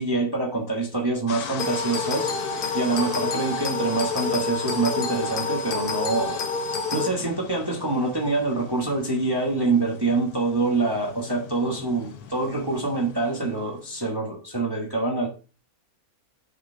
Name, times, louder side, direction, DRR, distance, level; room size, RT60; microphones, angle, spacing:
voice 1, 0.0-2.3 2.7-6.4 6.9-15.3, right 3 dB, 15° right, 1.4 m, -25 dB
sound 1, 1.3-14.1, left 7 dB, 80° left, 1.3 m, -41 dB
sound 2, 1.6-7.1, left 4 dB, 40° left, 1.2 m, -28 dB
6.8 x 5.0 x 4.6 m
omnidirectional pair, 1.6 m